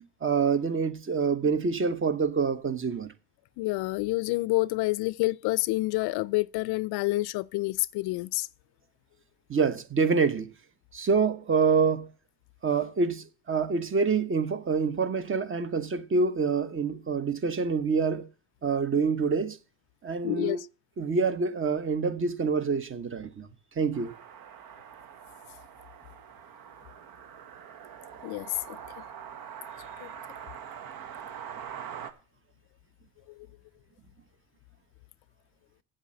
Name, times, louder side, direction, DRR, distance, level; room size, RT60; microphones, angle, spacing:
voice 1, 0.2-3.1 9.5-10.5 10.9-12.1 12.6-18.3 18.6-19.6 20.0-20.6 21.0-23.5 23.8-24.1, right 5 dB, 30° right, 1.2 m, -26 dB
voice 2, 3.6-8.5 20.2-20.7 28.2-28.8 30.0-30.1, left 21 dB, 70° left, 0.5 m, -28 dB
sound 1, 23.9-32.1, right 8 dB, 60° right, 1.4 m, -44 dB
8.0 x 7.7 x 7.7 m
supercardioid pair, 85°, 40 cm